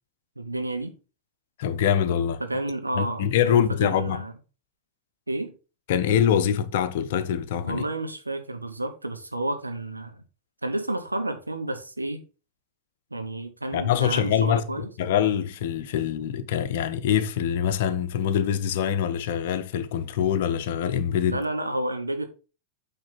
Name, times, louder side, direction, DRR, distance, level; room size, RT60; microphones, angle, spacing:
voice 1, 0.4-0.9 2.4-4.3 5.3-5.5 7.6-10.2 10.6-12.2 13.1-14.9 21.3-22.3, right 1 dB, 85° right, 1.1 m, -30 dB
voice 2, 1.6-2.4 3.0-4.2 5.9-7.9 13.7-14.6 15.0-21.4, left 9 dB, 55° left, 0.7 m, -24 dB
8.8 x 3.9 x 4.2 m
figure-of-eight pair, 90°, 0 cm